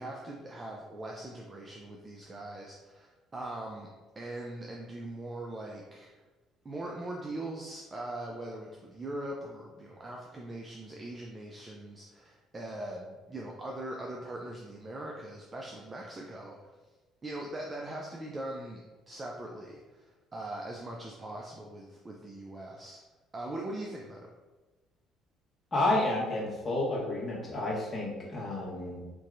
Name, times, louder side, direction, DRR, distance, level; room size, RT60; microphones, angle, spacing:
voice 1, 0.0-3.9 4.2-6.1 6.6-16.7 17.2-18.8 19.1-23.0 23.3-24.3, right 1 dB, 25° right, -1 dB, 0.5 m, -41 dB
voice 2, 25.7-29.0, left 2 dB, 30° left, -4 dB, 1.2 m, -30 dB
4.5 x 2.7 x 2.5 m, 1.2 s
supercardioid pair, 90°, 0 cm